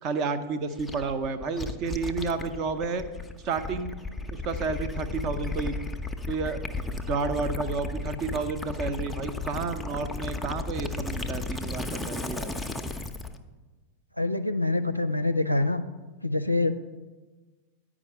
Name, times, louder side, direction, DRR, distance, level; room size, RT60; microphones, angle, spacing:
voice 1, 0.0-3.0 3.4-3.9 4.3-5.8 6.3-6.6 7.1-12.5, right 4 dB, 40° right, 10 dB, 0.6 m, -31 dB
Gurgling / Liquid, 0.8-13.4, left 3 dB, 5° left, 0.6 m, -34 dB
voice 2, 14.2-15.8 16.2-16.8, left 2 dB, 90° left, 9 dB, 0.4 m, -25 dB
9.6 x 4.9 x 6.6 m, 1.2 s
figure-of-eight pair, 90°, 0 cm